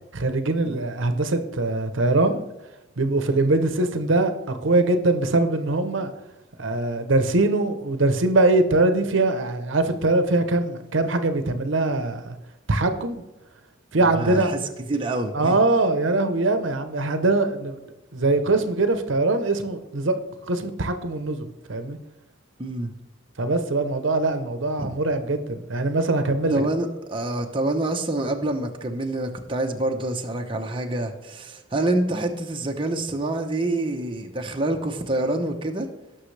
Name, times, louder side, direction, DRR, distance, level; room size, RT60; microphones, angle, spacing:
voice 1, 0.1-2.4 3.0-6.1 6.6-12.3 12.7-13.2 13.9-14.5 15.3-17.8 18.1-20.1 20.5-22.0 23.4-26.6, right 2 dB, 75° right, 9 dB, 0.9 m, -22 dB
voice 2, 14.0-14.6 14.9-15.6 22.6-22.9 24.8-24.9 26.5-35.9, right 2 dB, 25° right, 2 dB, 0.9 m, -27 dB
18.0 x 6.2 x 3.3 m, 1.0 s
head